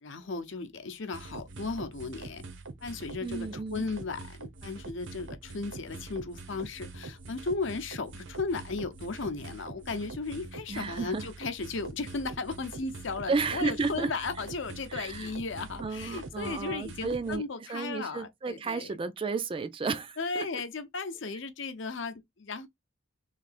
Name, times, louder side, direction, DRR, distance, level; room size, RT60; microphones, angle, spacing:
voice 1, 0.0-2.4 2.8-19.0 20.2-22.7, left 4 dB, 65° left, 0.7 m, -35 dB
sound 1, 1.1-17.4, right 3 dB, 65° right, 0.8 m, -44 dB
voice 2, 3.2-3.9 10.7-11.2 13.3-14.1 14.9-15.3 15.8-20.5, right 4 dB, 25° right, 0.3 m, -32 dB
3.3 x 2.8 x 4.1 m
head